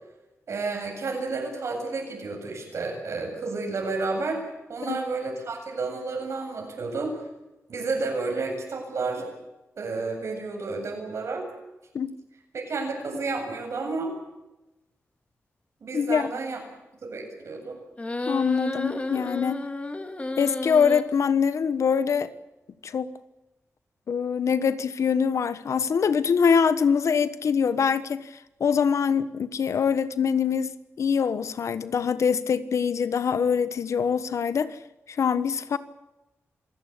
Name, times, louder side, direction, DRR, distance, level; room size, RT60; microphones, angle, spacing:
voice 1, 0.5-4.4 4.7-7.1 7.7-9.3 9.8-11.4 12.5-14.1 15.8-16.6 17.0-17.8, right 3 dB, 70° right, 2 dB, 8.0 m, -31 dB
voice 2, 15.9-16.3 18.3-19.6 20.4-22.3 22.8-23.1 24.1-28.3 28.6-34.8 35.1-35.8, left 6 dB, 80° left, 13 dB, 1.3 m, -24 dB
sound 1, 18.0-21.0, left 2 dB, 25° left, 2.3 m, -31 dB
26.5 x 17.0 x 8.4 m, 1.0 s
wide cardioid pair, 115°, 5 cm